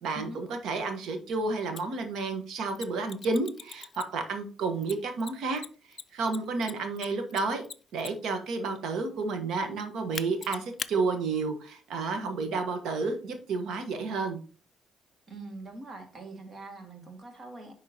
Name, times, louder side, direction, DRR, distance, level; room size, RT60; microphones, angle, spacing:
voice 1, 0.0-5.6 6.1-7.6 7.9-14.4, right 3 dB, 80° right, 6 dB, 1.2 m, -31 dB
Mechanisms, 1.8-1.9 2.7-4.3 4.8-8.4 10.1-10.9, left 6 dB, 50° left, 0.4 m, -40 dB
voice 2, 15.3-17.7, right 2 dB, 45° right, 4 dB, 1.9 m, -43 dB
10.0 x 3.8 x 2.8 m, 0.39 s
cardioid pair, 90°, 0 cm